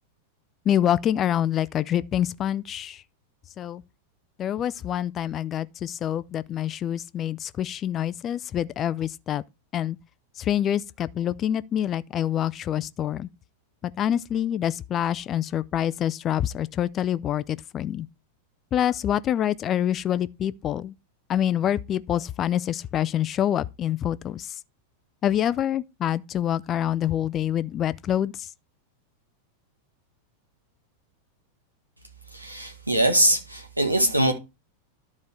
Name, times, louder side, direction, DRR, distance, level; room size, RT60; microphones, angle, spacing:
voice 1, 0.7-3.0 3.6-3.8 4.4-9.4 9.7-10.0 10.4-13.3 14.0-18.1 18.7-21.0 21.3-24.6 25.2-28.5, left 10 dB, 30° left, 0.4 m, -26 dB
voice 2, 32.3-34.3, right 1 dB, 85° right, 1.6 m, -22 dB
12.0 x 4.2 x 4.8 m
figure-of-eight pair, 90°, 0 cm